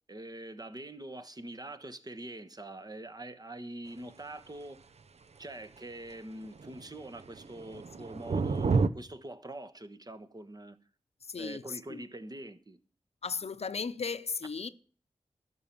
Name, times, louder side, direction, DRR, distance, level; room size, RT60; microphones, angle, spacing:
voice 1, 0.1-4.9 5.4-10.8 11.4-12.8, right 1 dB, 35° right, 1.2 m, -44 dB
sound 1, 6.6-6.8 7.2-8.9, right 4 dB, 70° right, 0.7 m, -29 dB
voice 2, 11.2-12.0 13.2-14.7, left 5 dB, 65° left, 0.7 m, -36 dB
12.0 x 5.5 x 8.9 m
cardioid pair, 50°, 12 cm